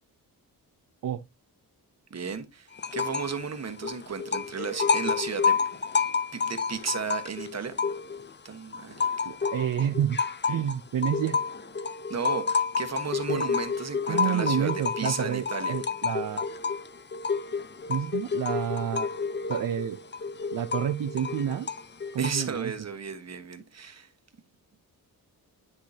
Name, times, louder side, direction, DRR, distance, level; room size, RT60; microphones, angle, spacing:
voice 1, 2.1-5.6 6.3-7.7 8.4-9.0 12.1-15.7 22.2-24.1, right 6 dB, 45° right, 1.4 m, -34 dB
sound 1, 2.8-3.4 3.7-8.3 8.7-22.6, left 5 dB, 30° left, 0.7 m, -30 dB
voice 2, 9.3-10.2 10.5-11.4 13.3-13.4 14.1-16.5 17.9-19.1 19.5-20.0 20.5-21.7 22.1-22.7, right 9 dB, 60° right, 0.7 m, -29 dB
9.6 x 6.6 x 2.8 m
wide cardioid pair, 120°, 36 cm